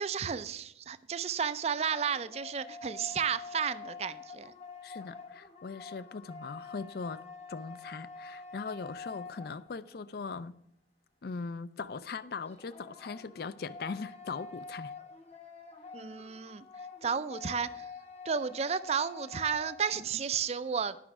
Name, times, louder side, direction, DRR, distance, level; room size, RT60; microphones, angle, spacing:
voice 1, 0.0-4.5 15.9-16.6 17.0-17.9 18.2-21.0, right 6 dB, 35° right, 0.4 m, -32 dB
sound 1, 1.3-10.0 12.4-20.1, left 4 dB, 35° left, 0.8 m, -47 dB
voice 2, 4.8-7.2 7.5-10.6 11.2-14.9, left 4 dB, 60° left, 0.4 m, -40 dB
10.0 x 5.8 x 6.0 m
head